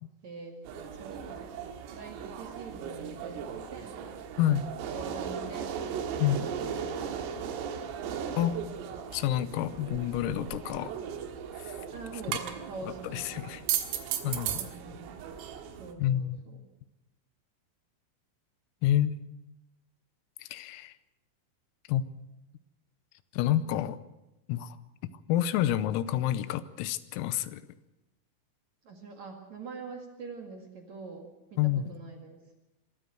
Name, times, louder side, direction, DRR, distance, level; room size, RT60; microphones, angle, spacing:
voice 1, 0.2-1.6 1.9-4.0 4.9-5.8 6.2-7.4 11.9-13.5 14.2-15.2 15.8-16.6 28.8-32.4, right 4 dB, 50° right, 3 dB, 2.3 m, -45 dB
sound 1, 0.7-15.9, right 8 dB, 80° right, 4.1 m, -37 dB
voice 2, 9.1-10.9 12.3-12.4 12.8-13.6 14.2-14.6 16.0-16.4 18.8-19.2 20.4-21.0 21.9-22.0 23.3-24.0 24.5-24.8 25.3-27.6 31.6-31.8, left 12 dB, 85° left, 14 dB, 3.5 m, -28 dB
24.5 x 13.5 x 7.9 m, 0.95 s
omnidirectional pair, 6.0 m